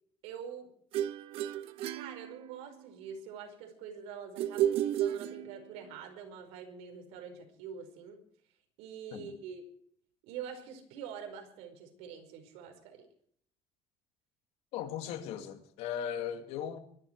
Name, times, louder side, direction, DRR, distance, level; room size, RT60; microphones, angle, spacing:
voice 1, 0.2-0.7 1.9-8.2 8.8-9.6 10.2-13.1, right 7 dB, 85° right, 5 dB, 5.1 m, -45 dB
sound 1, 0.9-2.9 4.4-5.9, right 11 dB, 65° right, 1.2 m, -33 dB
voice 2, 14.7-16.8, left 9 dB, 75° left, 8 dB, 2.4 m, -38 dB
24.0 x 11.5 x 4.7 m, 0.64 s
cardioid pair, 145°, 11 cm